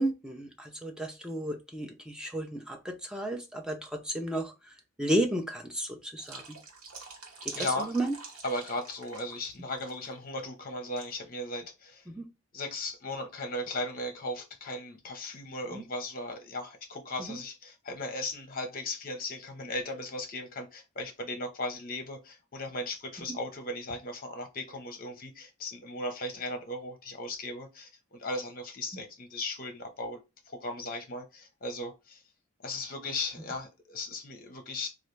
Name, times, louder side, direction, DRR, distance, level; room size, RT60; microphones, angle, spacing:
voice 1, 0.0-4.5 5.0-6.4 7.4-7.7 7.9-8.1 12.2-12.3 15.7-15.8 17.3-17.4, right 1 dB, 5° right, 0.4 m, -32 dB
sound 1, 6.2-9.5 9.7-10.1 11.0-11.1, right 4 dB, 85° right, 0.9 m, -44 dB
voice 2, 7.5-8.0 8.4-12.0 12.5-30.2 30.5-32.2 32.6-34.9, left 2 dB, 40° left, 0.7 m, -37 dB
3.2 x 2.4 x 3.1 m
head